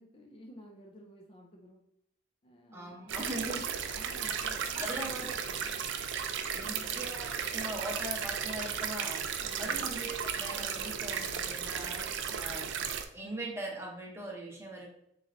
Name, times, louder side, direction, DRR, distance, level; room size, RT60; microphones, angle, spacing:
voice 1, 0.0-1.8 2.4-3.6 3.9-5.8 6.6-7.0 9.4-9.9 12.3-12.4, equal, 30° left, 0 dB, 0.4 m, -53 dB
voice 2, 2.7-3.7 4.7-5.4 6.5-9.3 9.6-12.7 13.1-14.9, right 1 dB, 15° right, -2 dB, 0.7 m, -41 dB
sound 1, 3.1-13.1, right 7 dB, 70° right, 0.4 m, -35 dB
3.8 x 3.1 x 2.5 m, 0.75 s
head